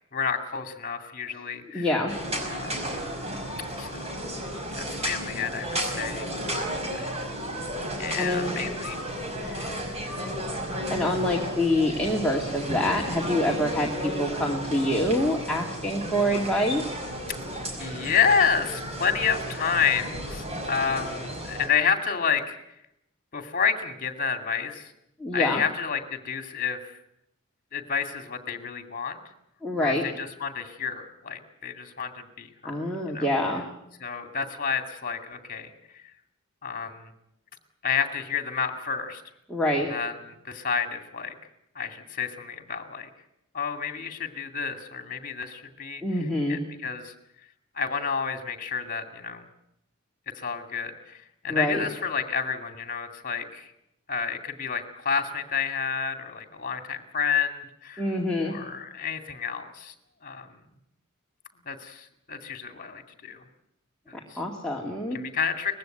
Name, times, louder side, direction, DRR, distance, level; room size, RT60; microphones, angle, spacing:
voice 1, 0.1-1.9 2.5-2.8 3.8-4.2 4.7-6.3 6.9-7.0 8.0-9.0 9.4-9.7 10.7-11.5 17.8-22.6 23.3-24.9 25.3-26.8 27.7-29.2 29.8-32.8 33.1-33.3 34.0-35.7 36.6-37.1 37.8-39.2 39.9-40.1 40.4-41.3 41.7-43.1 43.5-46.0 46.5-47.1 47.7-49.4 50.4-53.7 54.1-58.1 58.4-59.9 60.2-60.5 61.6-63.4 64.1-64.4 65.1-65.8, left 6 dB, 45° left, 7 dB, 2.4 m, -30 dB
voice 2, 1.7-2.1 8.2-8.6 10.9-16.9 25.2-25.6 29.6-30.0 32.6-33.6 39.5-39.9 46.0-46.6 51.5-51.8 58.0-58.5 64.1-65.2, left 1 dB, 5° left, -3 dB, 2.3 m, -26 dB
sound 1, 2.1-21.7, equal, 30° right, 5.0 m, -33 dB
20.0 x 15.5 x 9.2 m, 0.81 s
head